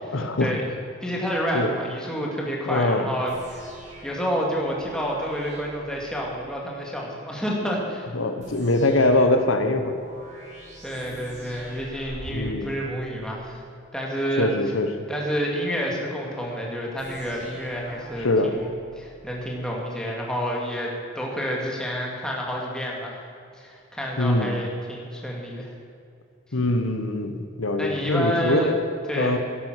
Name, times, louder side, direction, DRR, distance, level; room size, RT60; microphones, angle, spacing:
voice 1, 0.1-0.6 1.5-1.7 2.6-3.1 8.1-10.0 12.3-12.7 14.4-14.9 18.2-18.6 24.2-24.5 26.5-28.8 29.1-29.4, left 2 dB, 90° left, 7 dB, 1.1 m, -23 dB
voice 2, 1.0-3.7 4.0-8.1 10.8-13.6 13.9-14.5 15.1-18.7 19.0-23.2 23.6-25.7 27.8-28.7 29.1-29.4, equal, 5° left, -3 dB, 2.4 m, -29 dB
sound 1, 3.3-6.5 8.4-13.6 17.0-19.6, right 1 dB, 40° right, 4.2 m, -44 dB
13.0 x 11.0 x 6.4 m, 2.5 s
head